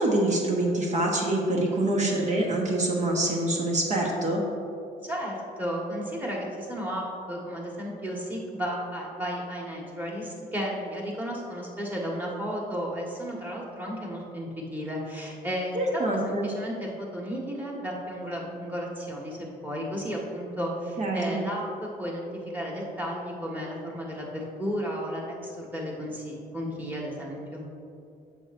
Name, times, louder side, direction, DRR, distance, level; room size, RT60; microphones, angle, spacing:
voice 1, 0.0-4.4 15.7-16.5 21.0-21.4, right 1 dB, 45° right, -1 dB, 1.2 m, -25 dB
voice 2, 5.0-27.6, equal, 10° right, -3 dB, 1.6 m, -33 dB
8.8 x 6.6 x 2.6 m, 2.6 s
cardioid pair, 95°, 17 cm